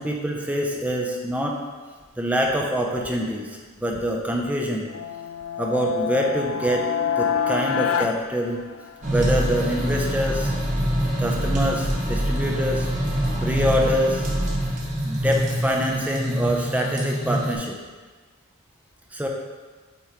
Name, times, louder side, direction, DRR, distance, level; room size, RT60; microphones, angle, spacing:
voice 1, 0.0-1.6 2.2-3.5 3.8-4.9 5.6-6.8 7.2-8.6 9.1-10.5 11.2-12.9 13.4-14.2 15.1-17.8 19.1-19.3, equal, 5° right, 0 dB, 0.5 m, -25 dB
sound 1, 4.9-9.2, left 7 dB, 65° left, 0.3 m, -27 dB
sound 2, 9.0-17.5, equal, 35° right, 1.4 m, -25 dB
8.3 x 3.0 x 4.5 m, 1.4 s
head